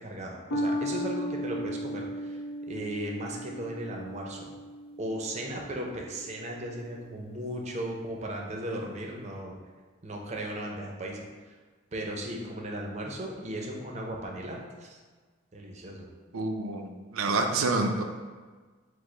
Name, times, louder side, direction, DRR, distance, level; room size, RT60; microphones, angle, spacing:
voice 1, 0.0-2.4 2.7-4.5 5.0-9.5 10.0-11.3 11.9-15.0 15.5-16.1, right 1 dB, 30° right, 0 dB, 0.5 m, -36 dB
sound 1, 0.5-7.2, equal, 75° left, 0.5 m, -36 dB
voice 2, 16.3-18.0, right 3 dB, 85° right, 4 dB, 0.5 m, -28 dB
4.9 x 2.0 x 4.3 m, 1.4 s
head